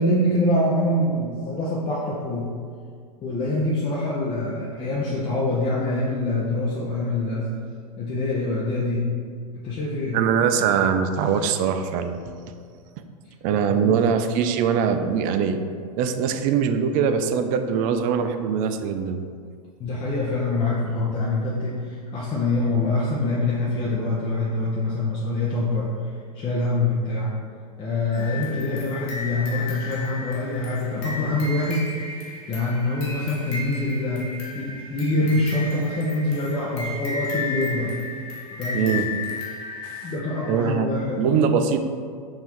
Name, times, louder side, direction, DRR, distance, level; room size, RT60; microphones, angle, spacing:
voice 1, 0.0-2.5 3.2-7.5 8.0-9.1 9.5-10.2 13.5-14.0 19.8-25.9 26.3-27.3 27.8-31.9 32.5-37.9 38.5-38.9 40.0-41.6, left 2 dB, 25° left, -6 dB, 0.7 m, -25 dB
voice 2, 10.1-12.2 13.4-15.6 16.0-19.2 28.5-28.7 38.7-39.1 39.8-40.0 40.5-41.8, right 7 dB, 40° right, 7 dB, 0.4 m, -22 dB
sound 1, 28.1-40.7, left 3 dB, 60° left, 1.2 m, -34 dB
5.4 x 2.7 x 3.0 m, 2.1 s
hypercardioid pair, 110°, 20 cm